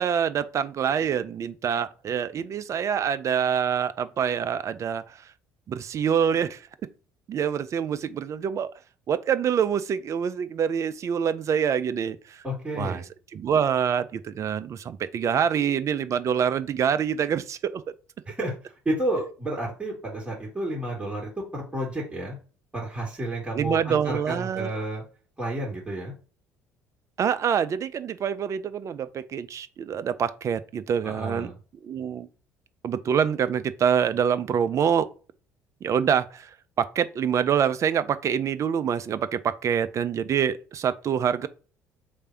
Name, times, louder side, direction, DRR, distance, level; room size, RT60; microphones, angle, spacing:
voice 1, 0.0-5.0 5.7-6.6 7.3-8.7 9.1-12.4 12.7-13.0 13.3-17.8 23.5-24.7 27.2-31.5 31.8-32.3 32.8-35.1 35.8-36.5 36.8-41.5, right 8 dB, 40° right, 0.4 m, -26 dB
voice 2, 12.4-13.0 18.3-22.4 22.7-25.0 25.4-26.1 31.0-31.5, right 1 dB, 15° right, 2.0 m, -31 dB
3.3 x 2.5 x 4.4 m
figure-of-eight pair, 55°, 8 cm